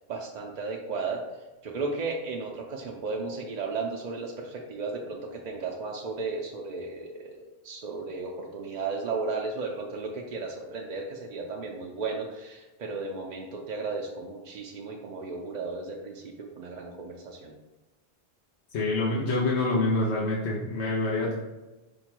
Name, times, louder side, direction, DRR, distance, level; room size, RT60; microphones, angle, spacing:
voice 1, 0.0-17.5, right 4 dB, 55° right, 0 dB, 0.5 m, -35 dB
voice 2, 18.7-21.3, left 2 dB, 90° left, -4 dB, 1.0 m, -26 dB
5.2 x 2.2 x 4.4 m, 1.1 s
omnidirectional pair, 1.1 m